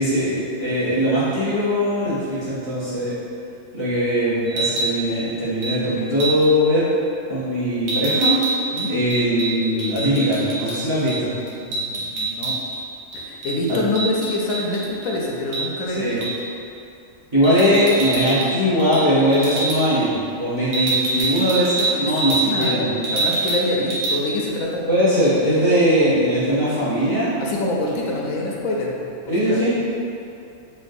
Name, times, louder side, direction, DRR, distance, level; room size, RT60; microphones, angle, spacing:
voice 1, 0.0-3.1 3.7-6.9 7.3-8.4 8.9-11.3 13.7-13.8 15.9-16.2 17.3-23.1 24.9-27.3 29.3-29.7, equal, 25° right, -12 dB, 0.7 m, -20 dB
sound 1, 4.5-4.9 5.6-5.8 6.2-6.5 7.9-10.8 11.1-11.2 11.5-12.8 13.1-15.1 15.5-15.7 16.2-16.4 17.4-18.5 18.8-19.0 19.3-19.8 20.7-22.8 23.0-23.6 23.9-24.1, right 3 dB, 85° right, 1.1 m, -24 dB
voice 2, 11.6-12.5 13.1-16.3 17.7-17.8 21.7-24.8 27.4-29.6, left 2 dB, 90° left, -2 dB, 1.0 m, -26 dB
3.2 x 3.1 x 2.6 m, 2.6 s
omnidirectional pair, 1.4 m